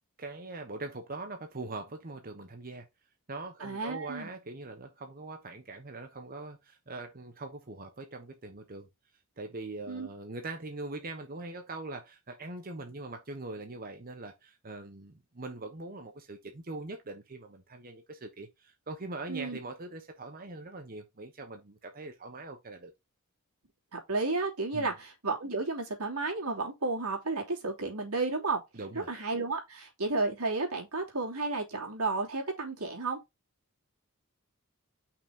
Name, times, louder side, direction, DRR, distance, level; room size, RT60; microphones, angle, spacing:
voice 1, 0.2-2.9 3.3-8.9 9.4-22.9 24.7-24.9 28.7-29.1, right 2 dB, 40° right, 1.1 m, -42 dB
voice 2, 3.6-4.3 9.9-10.1 19.3-19.6 23.9-28.6 29.1-33.2, right 3 dB, 90° right, 3.1 m, -32 dB
5.9 x 4.0 x 5.3 m
head